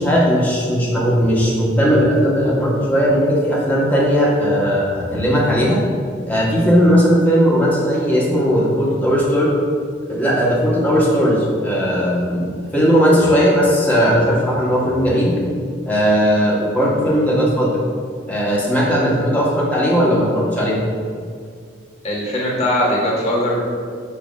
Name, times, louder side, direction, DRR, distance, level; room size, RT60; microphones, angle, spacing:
voice 1, 0.0-5.8 6.3-9.5 10.1-15.3 15.9-17.8 18.3-20.8, equal, 10° left, -5 dB, 1.1 m, -17 dB
voice 2, 22.0-23.6, left 1 dB, 35° left, -5 dB, 1.4 m, -20 dB
7.2 x 2.7 x 5.2 m, 2.1 s
head